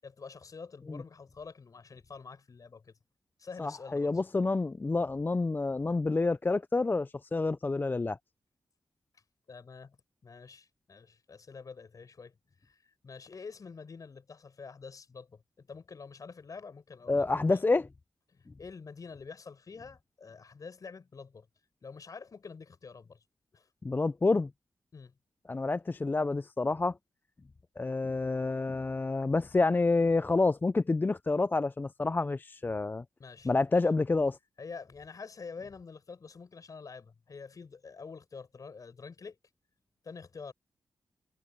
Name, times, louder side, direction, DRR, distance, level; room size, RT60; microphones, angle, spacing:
voice 1, 0.0-3.0 3.4-4.1 9.5-10.0 10.2-12.3 12.6-17.7 18.3-21.5 21.8-23.2 23.5-23.7 24.9-25.2 33.2-33.8 34.6-39.4 40.0-40.5, left 5 dB, 60° left, 7.5 m, -47 dB
voice 2, 3.6-8.2 17.1-17.9 23.8-24.5 25.5-27.0 27.8-33.0 33.4-34.4, left 3 dB, 30° left, 0.4 m, -28 dB
cardioid pair, 55°, 7 cm